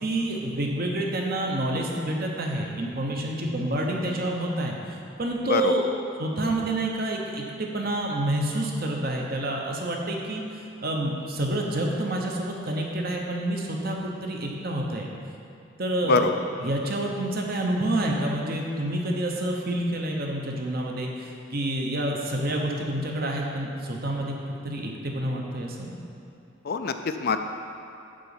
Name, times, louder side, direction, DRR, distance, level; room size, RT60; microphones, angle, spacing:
voice 1, 0.0-4.7 5.2-5.8 6.2-10.4 10.8-15.1 15.8-16.3 16.6-24.3 24.6-25.9, right 1 dB, 50° right, 0 dB, 1.0 m, -28 dB
voice 2, 26.7-27.4, left 5 dB, 50° left, 8 dB, 0.4 m, -23 dB
8.9 x 4.0 x 7.1 m, 2.7 s
head